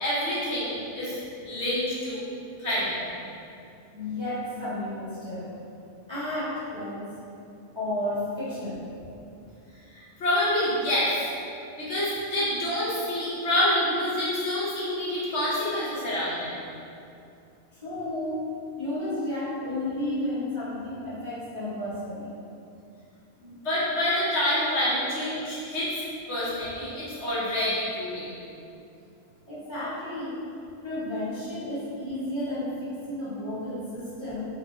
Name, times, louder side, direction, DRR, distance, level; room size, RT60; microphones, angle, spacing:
voice 1, 0.0-1.2 1.4-2.2 2.6-2.9 9.9-11.2 11.8-16.5 23.4-26.0 26.3-28.3, left 1 dB, 60° left, -8 dB, 0.9 m, -27 dB
voice 2, 3.9-5.5 6.1-7.1 7.7-8.9 17.8-18.4 18.8-22.3 29.5-30.4 30.8-34.5, left 1 dB, 25° right, -13 dB, 0.7 m, -32 dB
4.1 x 2.2 x 2.7 m, 2.6 s
omnidirectional pair, 1.4 m